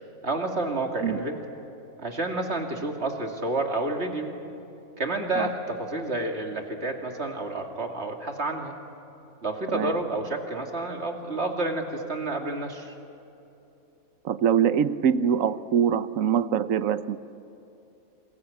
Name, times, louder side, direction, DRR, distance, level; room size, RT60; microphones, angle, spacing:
voice 1, 0.2-1.4 2.0-4.3 5.0-8.8 9.4-12.9, right 2 dB, 50° right, 2 dB, 2.7 m, -29 dB
voice 2, 14.2-17.2, right 8 dB, 75° right, 13 dB, 1.2 m, -23 dB
28.5 x 21.5 x 8.6 m, 2.8 s
omnidirectional pair, 1.5 m